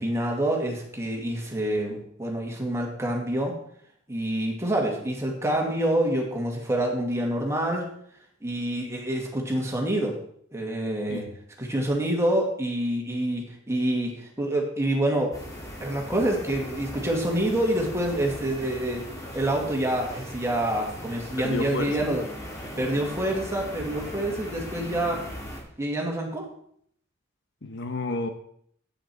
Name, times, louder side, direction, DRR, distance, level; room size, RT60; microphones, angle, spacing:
voice 1, 0.0-3.6 4.1-7.9 8.4-10.1 10.5-11.3 11.6-15.3 15.8-19.0 19.3-22.2 22.8-25.2 25.8-26.5, right 1 dB, 15° right, 0 dB, 2.2 m, -27 dB
sound 1, 15.3-25.6, equal, 20° left, 2.1 m, -39 dB
voice 2, 21.4-22.0 27.6-28.3, left 2 dB, 60° left, 7 dB, 1.1 m, -30 dB
9.7 x 8.7 x 4.4 m, 0.65 s
head